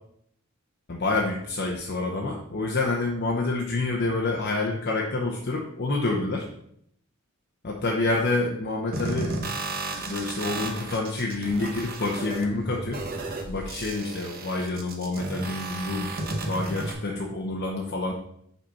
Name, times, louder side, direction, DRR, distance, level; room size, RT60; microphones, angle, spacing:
voice 1, 0.9-6.5 7.6-9.4 10.1-13.0 13.5-16.1 16.5-18.1, left 2 dB, 50° left, -1 dB, 0.8 m, -28 dB
sound 1, 8.9-16.9, right 2 dB, 45° right, 1.0 m, -33 dB
5.6 x 4.2 x 5.8 m, 0.71 s
head